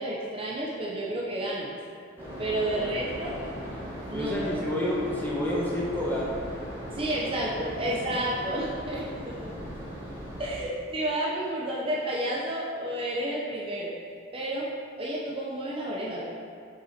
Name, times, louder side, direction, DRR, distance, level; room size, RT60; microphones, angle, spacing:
voice 1, 0.0-1.8 2.4-3.4 4.1-4.3 6.9-9.5 10.4-13.9 14.3-14.7 15.0-16.2, right 1 dB, 30° right, -5 dB, 0.9 m, -31 dB
sound 1, 2.2-10.5, equal, 10° right, 2.1 m, -38 dB
voice 2, 4.1-6.3, left 1 dB, 10° left, -6 dB, 1.4 m, -29 dB
6.8 x 6.1 x 4.4 m, 2.2 s
head